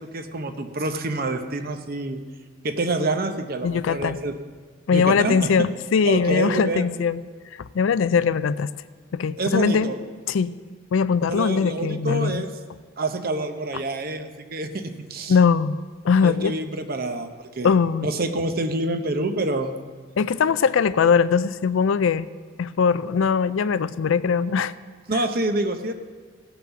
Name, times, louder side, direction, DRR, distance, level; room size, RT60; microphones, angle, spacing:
voice 1, 0.0-2.2 2.6-4.3 4.9-5.5 6.1-6.9 9.4-10.0 11.3-12.5 13.0-15.4 16.2-17.7 18.0-19.7 25.1-25.9, right 2 dB, 45° right, 7 dB, 0.8 m, -27 dB
voice 2, 3.6-4.2 4.9-7.2 7.6-8.7 9.1-9.9 10.3-10.5 10.9-12.4 15.3-15.8 16.0-16.5 17.6-18.1 20.2-22.3 22.6-24.7, left 6 dB, 75° left, 16 dB, 0.4 m, -21 dB
16.5 x 5.9 x 6.9 m, 1.5 s
head